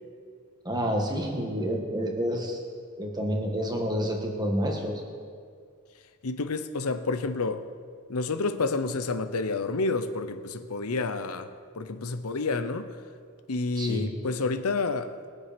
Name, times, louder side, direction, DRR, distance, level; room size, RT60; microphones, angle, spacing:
voice 1, 0.6-2.6 3.0-5.0 13.8-14.1, equal, 20° right, 1.6 m, -29 dB
voice 2, 6.2-7.6 8.1-13.0 13.5-15.2, left 3 dB, 80° left, 0.8 m, -29 dB
21.0 x 7.5 x 5.2 m
head